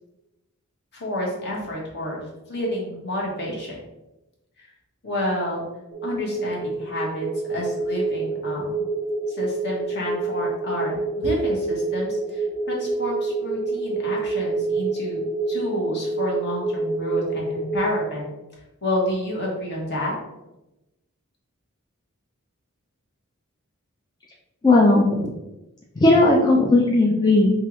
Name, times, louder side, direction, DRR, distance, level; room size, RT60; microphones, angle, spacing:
voice 1, 0.9-3.8 4.6-4.7 5.0-5.6 6.0-8.8 9.3-15.2 15.5-18.2 18.8-20.1, left 1 dB, 50° left, -3 dB, 1.3 m, -29 dB
sound 1, 5.9-17.9, right 3 dB, ahead, 0.8 m, -27 dB
voice 2, 24.6-25.3 26.0-27.5, left 2 dB, 20° left, -3 dB, 0.4 m, -16 dB
5.5 x 2.5 x 3.0 m, 0.96 s
head